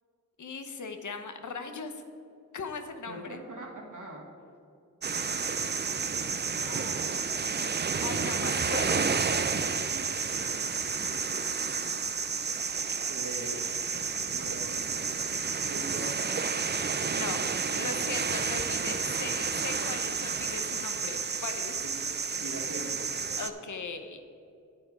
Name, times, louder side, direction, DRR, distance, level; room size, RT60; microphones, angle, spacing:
voice 1, 0.4-2.0 2.5-3.4 6.6-7.1 8.0-9.2 17.1-21.7 23.4-24.2, left 4 dB, 65° left, 7 dB, 0.9 m, -39 dB
voice 2, 3.1-4.3 7.9-8.0 8.4-8.5 8.9-9.1 9.4-9.6 9.9-10.1 10.4-10.7 13.1-13.8 14.3-15.0 15.6-16.2 17.7-18.1 21.8-23.1, right 2 dB, 65° right, -1 dB, 2.0 m, -42 dB
sound 1, 5.0-23.5, right 5 dB, 30° right, 0.5 m, -31 dB
9.0 x 7.9 x 4.9 m, 2.5 s
wide cardioid pair, 80°, 33 cm